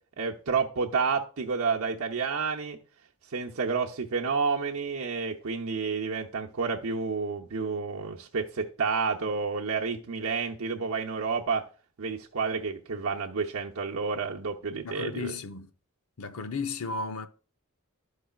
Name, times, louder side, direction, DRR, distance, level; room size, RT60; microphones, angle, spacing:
voice 1, 0.2-2.8 3.3-11.6 12.0-15.3, right 5 dB, 80° right, 0.8 m, -30 dB
voice 2, 14.8-15.7 16.2-17.3, left 4 dB, 80° left, 0.7 m, -34 dB
12.5 x 4.8 x 2.4 m
head